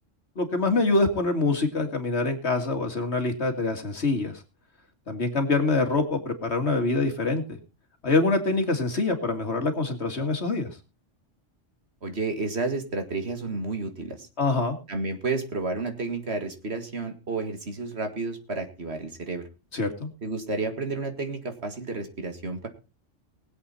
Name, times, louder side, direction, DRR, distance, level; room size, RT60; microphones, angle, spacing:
voice 1, 0.4-4.4 5.1-7.6 8.0-10.7 14.4-14.8 19.7-20.1, left 3 dB, 60° left, 6 dB, 2.3 m, -25 dB
voice 2, 12.0-14.3 14.9-19.4 20.2-22.7, right 3 dB, 55° right, 6 dB, 2.1 m, -31 dB
20.5 x 8.0 x 4.2 m, 0.30 s
omnidirectional pair, 1.3 m